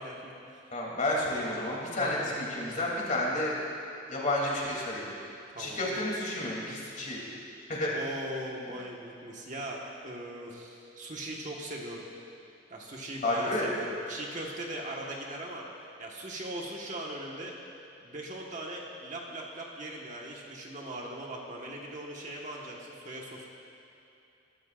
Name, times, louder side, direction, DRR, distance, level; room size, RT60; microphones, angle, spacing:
voice 1, 0.0-0.6 1.9-2.6 5.5-5.9 7.9-12.1 12.7-15.6 16.0-17.5 18.0-23.5, right 1 dB, 45° right, -2 dB, 1.5 m, -40 dB
voice 2, 0.7-3.5 4.1-5.1 5.6-7.2 7.7-7.9 13.2-13.7, left 1 dB, 45° left, -4 dB, 3.0 m, -31 dB
22.5 x 12.5 x 2.5 m, 2.8 s
head